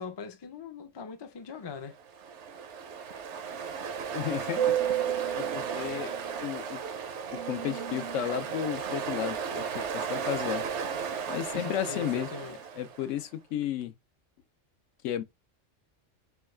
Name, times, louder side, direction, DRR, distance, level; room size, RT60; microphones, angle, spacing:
voice 1, 0.0-1.9 11.5-12.6, left 6 dB, 40° left, 0.3 m, -40 dB
Ocean, 2.0-13.1, right 8 dB, 70° right, 1.0 m, -33 dB
voice 2, 4.1-4.8 5.3-6.1 6.4-6.8 7.5-10.6 11.3-13.9 15.0-15.2, left 10 dB, 80° left, 1.0 m, -33 dB
4.5 x 2.3 x 3.1 m
omnidirectional pair, 1.3 m